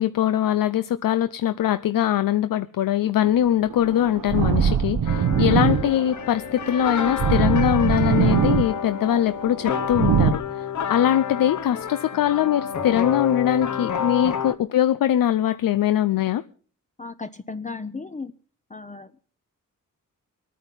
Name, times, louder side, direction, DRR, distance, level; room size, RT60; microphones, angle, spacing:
voice 1, 0.0-16.4, left 11 dB, 80° left, 0.7 m, -22 dB
sound 1, 3.2-10.3, right 7 dB, 85° right, 1.1 m, -23 dB
sound 2, 5.1-14.5, left 8 dB, 60° left, 1.3 m, -29 dB
voice 2, 17.0-18.3 18.7-19.1, left 4 dB, 20° left, 0.8 m, -35 dB
22.5 x 9.4 x 5.6 m
cardioid pair, 80°, 33 cm